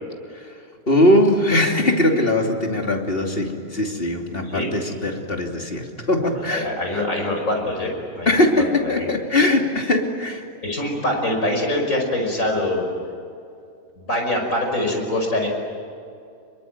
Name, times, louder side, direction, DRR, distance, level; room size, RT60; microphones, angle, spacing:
voice 1, 0.9-7.0 8.3-10.4, left 1 dB, 35° left, 2 dB, 3.0 m, -20 dB
voice 2, 6.2-8.4 8.8-9.1 10.6-12.9 14.0-15.5, left 1 dB, 55° left, 2 dB, 6.1 m, -24 dB
27.5 x 23.0 x 9.4 m, 2.5 s
omnidirectional pair, 1.6 m